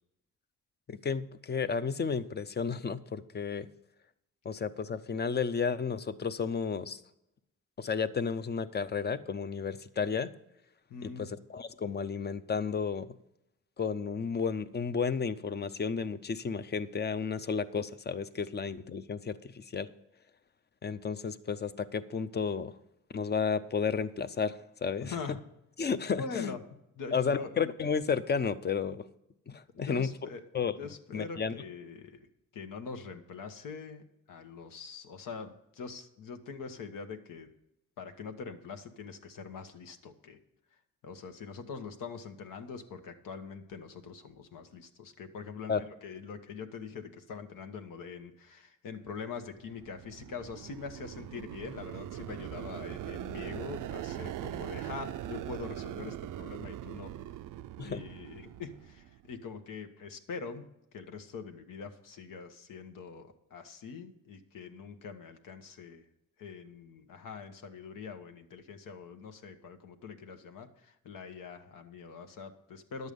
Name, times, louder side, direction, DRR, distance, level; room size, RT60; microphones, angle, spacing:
voice 1, 0.9-3.7 4.4-7.0 7.8-10.3 11.0-13.1 13.8-19.9 20.8-22.7 23.1-25.2 25.8-26.5 27.1-29.0 29.5-30.1 30.5-30.7 31.1-31.5 45.7-45.8 57.8-58.0, left 6 dB, 30° left, 13 dB, 0.6 m, -32 dB
voice 2, 10.9-11.4 25.0-25.4 26.2-26.6 27.0-27.5 29.7-30.4 30.7-32.3 32.5-34.0 34.3-37.5 38.0-40.4 41.0-57.1 57.8-60.6 60.9-66.0 66.4-73.1, left 5 dB, 75° left, 7 dB, 1.3 m, -43 dB
sound 1, 49.6-59.3, right 13 dB, 75° right, 0.5 m, -41 dB
11.0 x 8.1 x 5.2 m, 0.84 s
cardioid pair, 105°, 32 cm